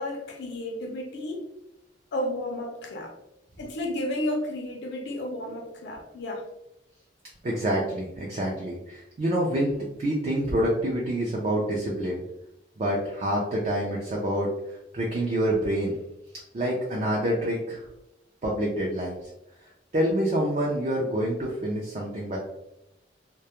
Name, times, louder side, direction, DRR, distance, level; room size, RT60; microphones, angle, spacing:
voice 1, 0.0-1.5 2.1-3.2 3.6-6.5, left 1 dB, 65° left, 0.4 m, -32 dB
voice 2, 7.4-12.2 12.8-16.0 16.5-17.8 18.4-19.3 19.6-22.4, right 1 dB, 40° right, 0.4 m, -27 dB
2.2 x 2.0 x 2.8 m
head